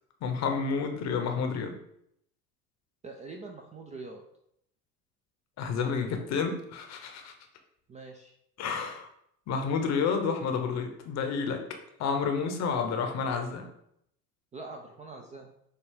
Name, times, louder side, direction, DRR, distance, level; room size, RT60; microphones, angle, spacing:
voice 1, 0.2-1.7 5.6-7.3 8.6-9.1 9.5-11.6 12.0-13.7, left 5 dB, 40° left, 5 dB, 0.8 m, -30 dB
voice 2, 3.0-4.2 7.9-8.3 14.5-15.5, right 3 dB, 15° right, 2 dB, 0.4 m, -43 dB
6.5 x 2.3 x 3.5 m, 0.74 s
hypercardioid pair, 75°, 43 cm